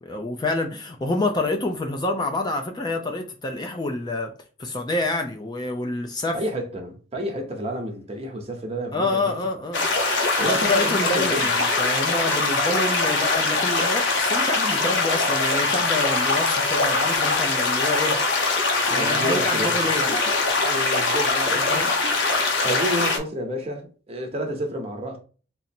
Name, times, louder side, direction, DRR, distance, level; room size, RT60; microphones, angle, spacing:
voice 1, 0.0-4.3 4.6-6.4 8.9-9.8 10.4-18.2 18.7-20.1 21.3-21.9, left 2 dB, 20° left, 0.4 m, -27 dB
voice 2, 6.3-9.3 10.4-11.5 18.9-19.8 20.6-21.9 22.6-25.2, equal, 35° right, 0.9 m, -30 dB
sound 1, 9.7-23.2, left 3 dB, 80° left, 0.8 m, -22 dB
3.9 x 2.0 x 4.3 m
head